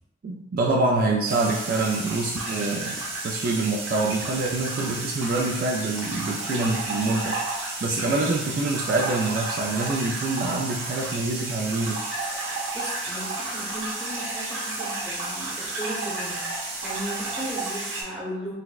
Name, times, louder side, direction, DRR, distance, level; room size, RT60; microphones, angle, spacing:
voice 1, 0.2-7.4 7.8-12.0, right 2 dB, 50° right, -1 dB, 0.3 m, -26 dB
sound 1, 1.3-18.0, right 2 dB, 80° right, 0.8 m, -32 dB
voice 2, 12.5-18.5, equal, 5° right, -7 dB, 0.8 m, -36 dB
4.0 x 2.1 x 2.3 m, 1.0 s
head